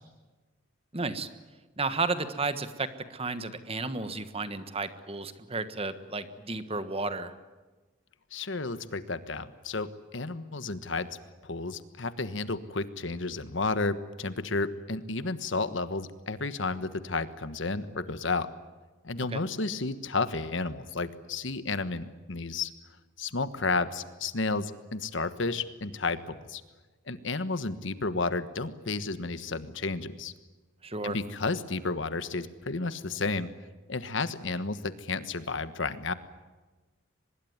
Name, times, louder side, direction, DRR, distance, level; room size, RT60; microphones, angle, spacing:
voice 1, 0.9-1.3 1.8-7.3 19.3-19.4 30.8-31.2, right 3 dB, 30° right, 11 dB, 1.4 m, -33 dB
voice 2, 8.3-11.1 11.4-18.5 19.0-22.7 23.2-26.6 27.1-30.3 31.0-33.5 33.9-36.1, left 3 dB, 65° left, 12 dB, 1.4 m, -32 dB
24.0 x 21.5 x 9.5 m, 1.2 s
head